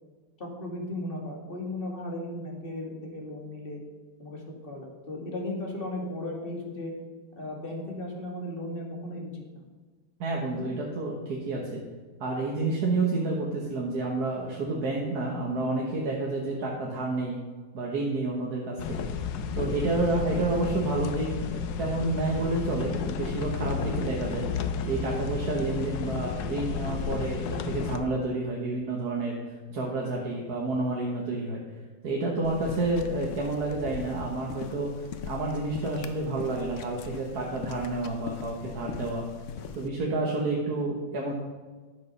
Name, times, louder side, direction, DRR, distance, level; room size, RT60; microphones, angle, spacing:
voice 1, 0.4-3.8 4.2-6.9 7.4-9.7 10.5-10.7, left 1 dB, 25° left, 0 dB, 2.0 m, -36 dB
voice 2, 10.2-11.8 12.2-17.4 17.7-19.1 19.5-24.5 24.8-31.6 32.0-39.2 39.8-41.3, right 2 dB, 50° right, -2 dB, 1.8 m, -30 dB
sound 1, 18.8-28.0, left 6 dB, 70° left, 1.4 m, -32 dB
sound 2, 32.4-39.9, left 6 dB, 85° left, 0.6 m, -41 dB
11.0 x 7.5 x 5.4 m, 1.4 s
omnidirectional pair, 2.2 m